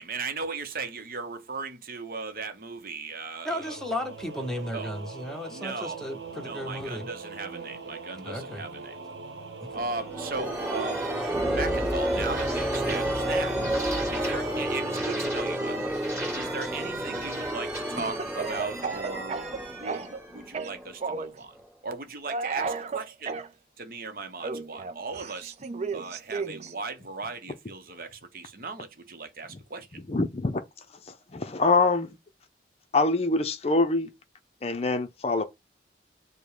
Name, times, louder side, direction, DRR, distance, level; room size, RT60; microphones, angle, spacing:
voice 1, 0.0-3.8 4.7-4.9 5.5-6.0 6.3-9.0 9.7-11.0 11.5-13.6 14.1-15.9 16.3-21.6 21.8-23.4 23.8-25.5 25.9-30.0, right 4 dB, 55° right, 0.8 m, -37 dB
voice 2, 3.4-7.1 8.2-8.6 9.6-9.8, left 1 dB, 5° left, 0.9 m, -35 dB
Singing / Musical instrument, 3.5-16.0, right 4 dB, 80° right, 0.9 m, -42 dB
sound 1, 9.7-21.2, right 1 dB, 15° right, 1.9 m, -30 dB
Speech / Cough, 18.0-20.2 20.5-21.4 22.3-23.5 24.4-26.7, right 4 dB, 40° right, 0.4 m, -33 dB
voice 3, 30.1-30.6 31.1-32.2 32.9-34.1 34.6-35.4, left 3 dB, 35° left, 0.5 m, -25 dB
5.1 x 2.1 x 4.8 m
head